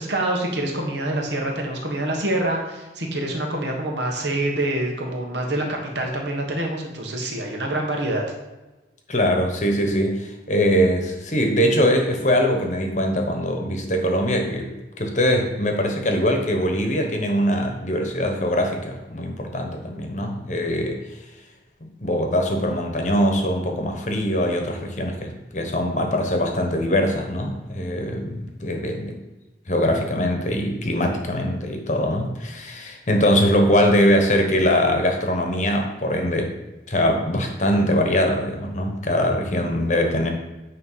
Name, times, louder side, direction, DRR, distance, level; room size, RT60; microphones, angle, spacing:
voice 1, 0.0-8.2, right 1 dB, 65° right, 0 dB, 1.6 m, -26 dB
voice 2, 9.1-21.0 21.8-29.2 29.7-36.5 36.9-40.3, equal, 40° left, 3 dB, 1.1 m, -22 dB
9.3 x 3.3 x 5.6 m, 1.1 s
head